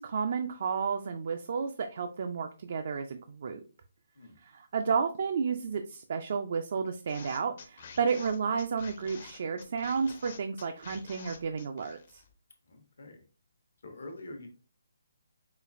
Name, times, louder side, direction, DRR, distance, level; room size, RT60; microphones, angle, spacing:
voice 1, 0.0-3.6 4.4-12.2, right 5 dB, 55° right, 7 dB, 0.3 m, -32 dB
sound 1, 7.1-12.3, left 5 dB, 50° left, 0.7 m, -49 dB
voice 2, 12.7-13.2 13.8-14.5, left 2 dB, 70° left, 4 dB, 1.0 m, -45 dB
4.9 x 2.4 x 2.5 m, 0.38 s
hypercardioid pair, 155°, 0 cm